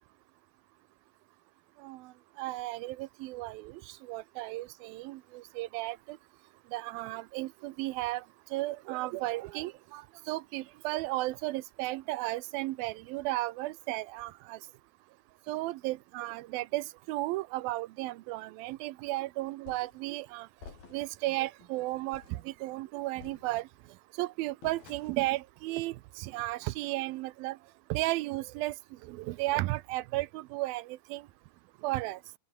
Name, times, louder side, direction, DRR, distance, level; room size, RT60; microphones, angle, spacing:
voice 1, 2.4-3.8 4.1-6.2 6.7-8.2 8.5-10.0 10.3-14.6 15.5-20.5 20.9-23.7 24.2-27.6 27.9-28.7 29.1-31.2 31.8-32.2, right 19 dB, 90° right, 2.6 m, -34 dB
sound 1, 19.7-20.0 20.6-21.2 21.6-21.7 22.1-22.5 23.2-23.9 24.6-25.3, left 5 dB, 80° left, 6.9 m, -52 dB
open air
omnidirectional pair, 4.1 m